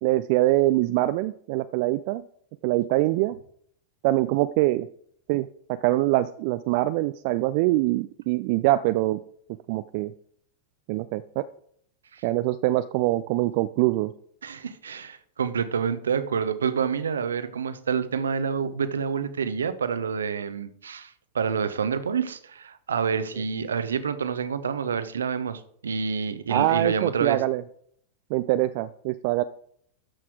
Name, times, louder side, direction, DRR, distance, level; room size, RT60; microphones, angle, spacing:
voice 1, 0.0-2.2 2.6-3.4 4.0-4.9 5.3-9.2 9.7-10.1 10.9-11.4 12.2-14.1 26.5-27.6 28.3-29.4, right 17 dB, 45° right, 12 dB, 0.4 m, -24 dB
voice 2, 14.4-27.4, right 6 dB, 70° right, 12 dB, 0.9 m, -28 dB
13.0 x 6.0 x 4.9 m, 0.64 s
figure-of-eight pair, 90°, 0 cm